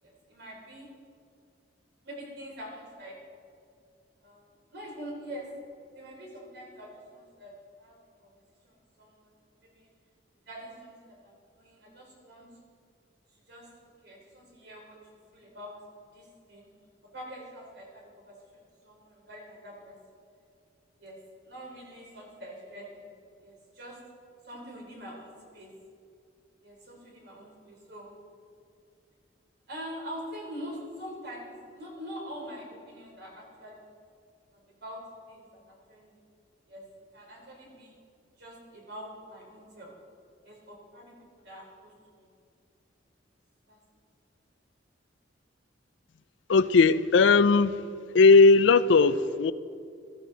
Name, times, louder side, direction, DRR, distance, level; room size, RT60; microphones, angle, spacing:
voice 1, 0.0-0.9 2.0-3.2 4.2-4.4 4.7-5.5 5.9-7.5 7.8-8.3 8.6-9.3 9.6-9.9 10.5-12.5 13.3-15.7 16.1-16.7 17.1-19.9 21.0-21.2 21.4-23.1 23.4-24.0 24.4-25.7 26.6-28.1 29.7-33.9 34.5-35.0 35.3-36.2 36.7-36.8 37.1-37.9 38.4-39.9 40.4-41.1 41.4-42.3 43.7-43.8, equal, 60° right, -1 dB, 3.7 m, -45 dB
voice 2, 46.5-47.7 48.1-49.5, left 4 dB, 75° left, 15 dB, 0.4 m, -18 dB
16.0 x 14.5 x 4.1 m, 2.4 s
head